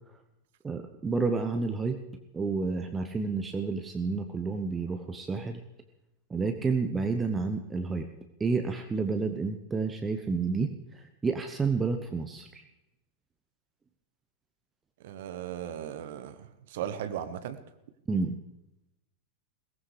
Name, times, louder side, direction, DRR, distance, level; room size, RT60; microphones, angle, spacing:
voice 1, 0.6-2.0 2.3-5.6 6.3-8.1 8.4-12.6 18.1-18.4, right 4 dB, 15° right, 6 dB, 1.0 m, -30 dB
voice 2, 15.0-17.6, right 10 dB, 55° right, 11 dB, 1.1 m, -37 dB
22.0 x 18.0 x 3.4 m, 0.90 s
figure-of-eight pair, 90°, 0 cm